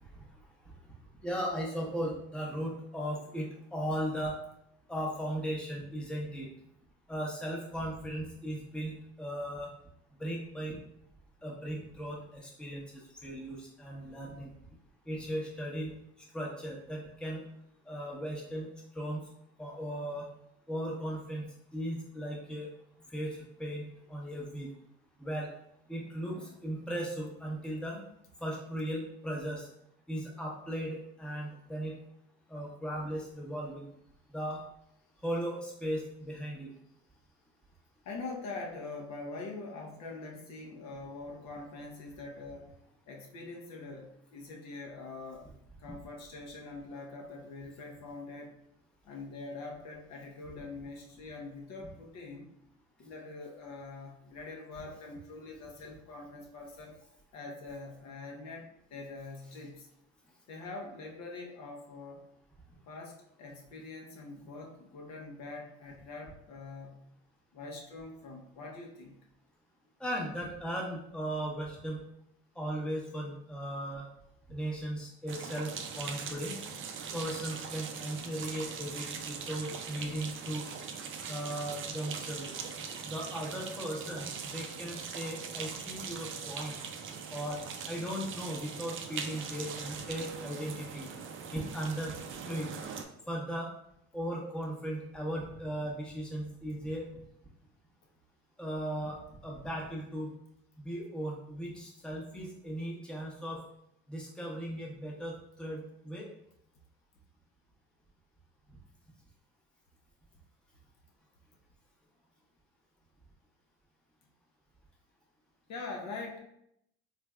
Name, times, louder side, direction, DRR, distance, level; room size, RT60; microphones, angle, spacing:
voice 1, 1.2-4.4 4.9-6.5 7.1-9.7 10.2-10.8 11.4-14.6 15.1-15.9 16.3-17.4 17.9-18.7 18.9-19.2 19.6-20.3 20.7-21.4 21.7-22.7 23.1-24.7 25.2-25.5 25.9-28.0 28.4-29.7 30.1-32.0 32.5-33.9 34.3-34.6 35.2-36.7 70.0-72.0 72.5-74.1 74.5-76.6 77.1-80.7 81.3-82.5 83.0-86.7 87.3-87.6 87.9-91.1 91.5-92.2 92.4-92.7 93.3-93.7 94.1-97.1 98.6-100.3 100.8-103.6 104.1-106.3, equal, 5° left, -2 dB, 0.8 m, -37 dB
voice 2, 38.0-42.7 43.1-45.5 45.8-48.6 49.0-52.5 53.0-57.0 57.3-59.9 60.5-62.3 62.9-67.1 67.5-69.2 115.7-116.4, left 3 dB, 55° left, 1 dB, 0.8 m, -44 dB
sound 1, 75.3-93.0, right 6 dB, 40° right, 0.5 m, -41 dB
3.3 x 3.2 x 2.3 m, 0.76 s
supercardioid pair, 90°, 32 cm